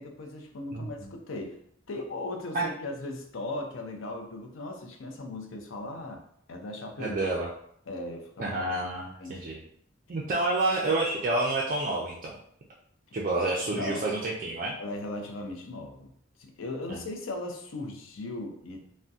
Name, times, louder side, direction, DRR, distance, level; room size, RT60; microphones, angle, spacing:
voice 1, 0.0-1.6 1.9-6.2 6.5-7.2 7.9-8.6 9.2-9.5 13.7-14.0 14.8-16.1 16.4-18.8, left 2 dB, 70° left, 4 dB, 0.5 m, -37 dB
voice 2, 7.0-7.5 8.4-9.6 10.1-12.4 13.1-14.8, right 2 dB, 40° right, -4 dB, 0.4 m, -29 dB
2.6 x 2.1 x 3.4 m, 0.69 s
head